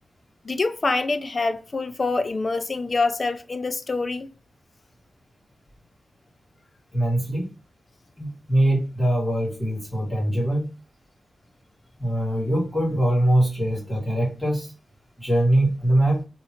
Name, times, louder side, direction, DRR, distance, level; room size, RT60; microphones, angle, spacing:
voice 1, 0.4-4.3, left 3 dB, 30° left, 0.4 m, -25 dB
voice 2, 6.9-7.5 8.2-10.7 12.0-14.7 15.2-16.2, right 1 dB, 10° left, 2.3 m, -22 dB
3.6 x 3.0 x 4.2 m
wide cardioid pair, 165°, 0 cm